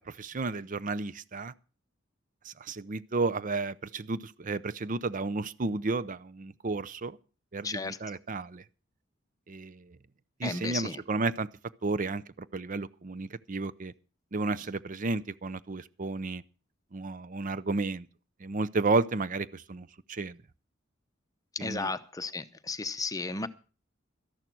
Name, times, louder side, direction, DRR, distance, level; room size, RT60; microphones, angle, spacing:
voice 1, 0.2-1.5 2.5-7.2 7.5-8.6 9.5-9.8 10.4-11.5 11.8-13.9 14.3-16.4 16.9-18.1 18.4-20.4 21.6-21.9, right 3 dB, 40° right, 0.6 m, -32 dB
voice 2, 7.6-8.0 10.4-11.0 21.6-23.5, left 3 dB, 20° left, 0.8 m, -34 dB
13.0 x 11.0 x 6.1 m
head